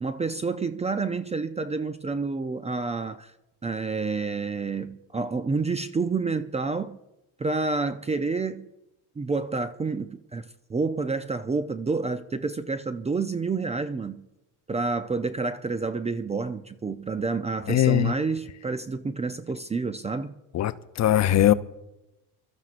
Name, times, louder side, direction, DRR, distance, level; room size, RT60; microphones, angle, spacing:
voice 1, 0.0-3.3 3.6-7.0 7.4-8.7 9.2-14.2 14.7-20.4, right 4 dB, 15° right, 0.4 m, -29 dB
voice 2, 17.7-18.1 20.5-21.5, left 12 dB, 40° left, 0.6 m, -21 dB
26.0 x 13.5 x 2.5 m
supercardioid pair, 100°, 44 cm